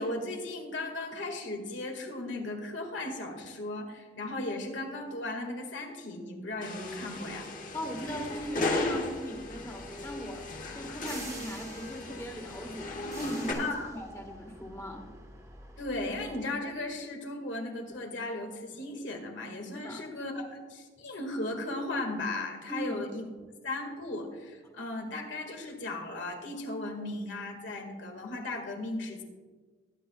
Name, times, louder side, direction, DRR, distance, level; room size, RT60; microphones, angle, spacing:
voice 1, 0.0-7.5 13.6-13.9 15.8-23.3 23.6-29.2, left 2 dB, 80° left, 3 dB, 1.9 m, -36 dB
sound 1, 6.6-13.5, left 2 dB, 45° left, 1.4 m, -36 dB
voice 2, 7.7-10.5 10.7-15.1 19.7-20.0 22.7-23.0, equal, 15° left, 2 dB, 1.4 m, -39 dB
sound 2, 8.3-16.5, right 2 dB, 20° right, 1.3 m, -49 dB
20.0 x 9.6 x 2.3 m, 1.4 s
head